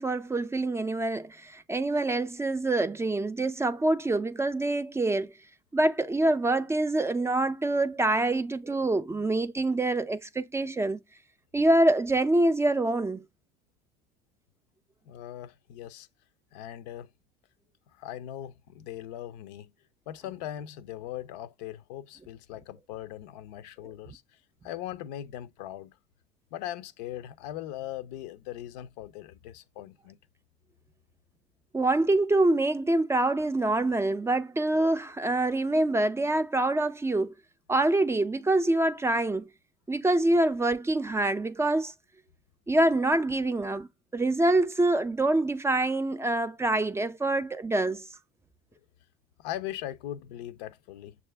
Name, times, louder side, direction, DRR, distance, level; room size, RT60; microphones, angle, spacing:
voice 1, 0.0-5.3 5.7-11.0 11.5-13.3 31.7-37.3 37.7-39.5 39.9-41.9 42.7-48.1, right 2 dB, 15° right, 0.4 m, -25 dB
voice 2, 15.1-16.1 16.5-17.1 18.0-19.7 20.1-24.2 24.6-26.0 26.5-30.2 49.4-51.2, left 12 dB, 80° left, 0.5 m, -40 dB
6.3 x 2.4 x 3.3 m
supercardioid pair, 90°, 21 cm